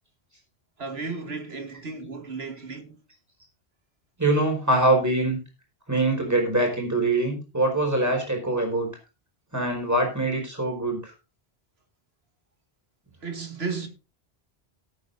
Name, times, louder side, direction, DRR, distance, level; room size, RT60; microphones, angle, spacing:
voice 1, 0.8-3.0 13.2-13.9, right 4 dB, 70° right, 2.3 m, -34 dB
voice 2, 4.2-5.4 5.9-8.9 9.5-11.1, right 2 dB, 15° right, 4.8 m, -23 dB
18.0 x 8.8 x 2.6 m
omnidirectional pair, 1.1 m